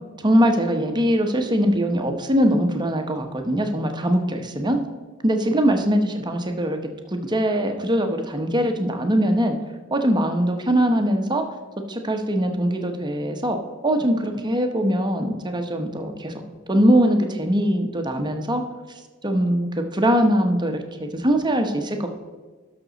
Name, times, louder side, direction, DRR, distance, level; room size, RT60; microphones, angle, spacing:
voice 1, 0.2-4.8 5.2-6.8 7.1-9.6 9.9-11.4 11.9-13.6 13.8-16.3 16.7-18.6 19.2-22.1, equal, 20° right, 5 dB, 1.0 m, -21 dB
12.5 x 6.1 x 4.0 m, 1.3 s
head